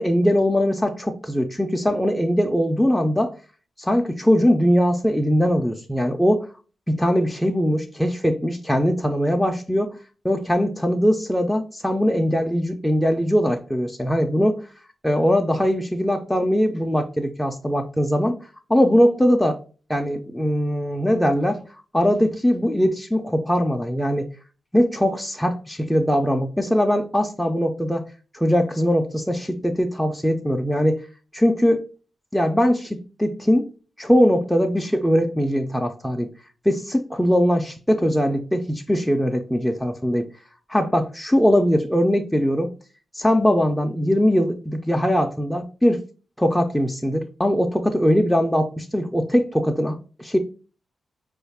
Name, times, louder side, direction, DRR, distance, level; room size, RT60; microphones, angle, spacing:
voice 1, 0.0-3.3 3.8-6.5 6.9-9.9 10.2-14.7 15.0-18.4 18.7-19.6 19.9-21.6 21.9-24.3 24.7-28.1 28.3-31.0 31.3-31.8 32.3-33.6 34.0-36.3 36.7-40.3 40.7-42.7 43.1-46.0 46.4-50.4, equal, 5° left, 0.3 m, -21 dB
4.7 x 2.3 x 3.2 m
wide cardioid pair, 135°, 0 cm